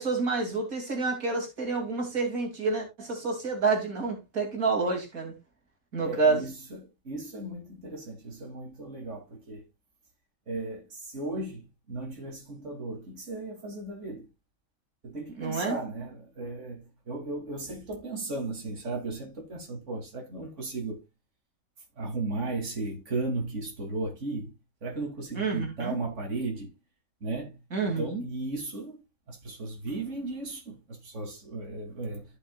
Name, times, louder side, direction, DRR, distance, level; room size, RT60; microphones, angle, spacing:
voice 1, 0.0-5.3 5.9-6.4 15.4-15.8 25.4-26.0 27.7-28.2, right 4 dB, 80° right, 3.2 m, -28 dB
voice 2, 6.0-9.6 10.5-14.3 15.0-21.0 22.0-24.5 24.8-26.7 27.2-27.5 28.0-29.0 29.3-32.2, right 2 dB, 60° right, 3.0 m, -35 dB
14.5 x 6.4 x 2.4 m
omnidirectional pair, 1.4 m